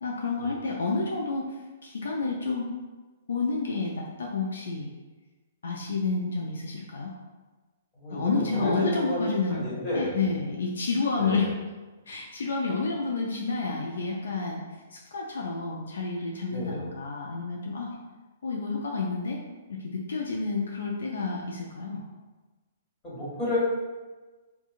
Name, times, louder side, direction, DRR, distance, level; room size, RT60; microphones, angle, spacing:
voice 1, 0.0-1.6 1.8-2.7 3.3-4.9 5.6-7.1 8.1-9.6 9.9-11.5 12.1-14.6 14.9-17.9 18.4-19.4 19.8-22.0, left 3 dB, 75° left, -1 dB, 0.3 m, -29 dB
voice 2, 8.0-9.2 9.5-10.1 11.2-11.5 16.5-16.9 23.0-23.6, left 1 dB, 25° left, -9 dB, 1.4 m, -31 dB
2.9 x 2.2 x 2.4 m, 1.3 s
hypercardioid pair, 125°, 0 cm